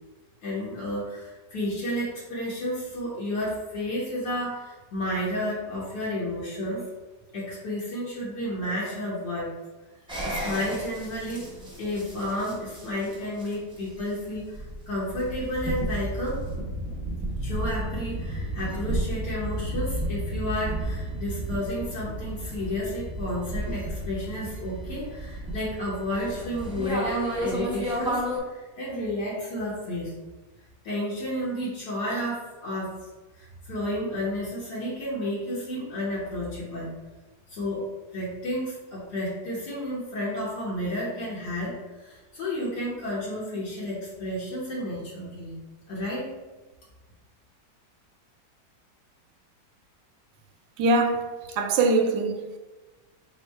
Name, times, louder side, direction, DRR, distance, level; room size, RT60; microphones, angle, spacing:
voice 1, 0.4-6.9 7.3-9.5 10.2-11.5 11.8-16.5 17.4-30.1 30.8-33.0 33.4-36.9 37.5-45.6 45.9-46.3, left 1 dB, 65° left, 1.5 m, -31 dB
sound 1, 10.1-28.4, right 1 dB, 5° right, 0.5 m, -33 dB
voice 2, 50.8-52.6, right 3 dB, 85° right, 1.2 m, -23 dB
4.3 x 2.1 x 4.4 m
omnidirectional pair, 1.9 m